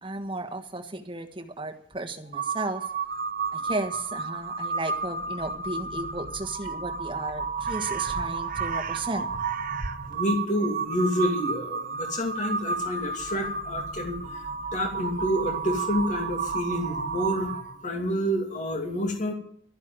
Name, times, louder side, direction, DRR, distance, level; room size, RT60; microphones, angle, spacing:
voice 1, 0.0-2.9 3.5-9.3, right 2 dB, 25° right, 7 dB, 1.3 m, -34 dB
Crow, 2.3-17.8, right 5 dB, 45° right, 1.0 m, -32 dB
voice 2, 10.1-14.2 14.7-19.3, equal, 40° left, 2 dB, 2.6 m, -28 dB
13.0 x 11.0 x 7.6 m, 0.64 s
head